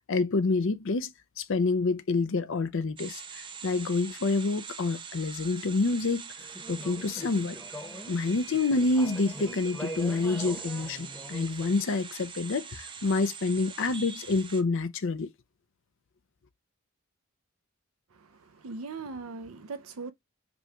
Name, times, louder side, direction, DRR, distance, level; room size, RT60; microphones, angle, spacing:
voice 1, 0.1-6.2 6.7-7.6 8.1-15.3, left 3 dB, 65° left, 0.6 m, -28 dB
sound 1, 3.0-14.6, right 6 dB, 25° right, 0.4 m, -43 dB
Conversation / Chatter, 6.4-11.8, equal, 10° left, 1.0 m, -43 dB
voice 2, 18.1-20.1, right 4 dB, 85° right, 0.6 m, -40 dB
5.1 x 2.3 x 2.9 m
head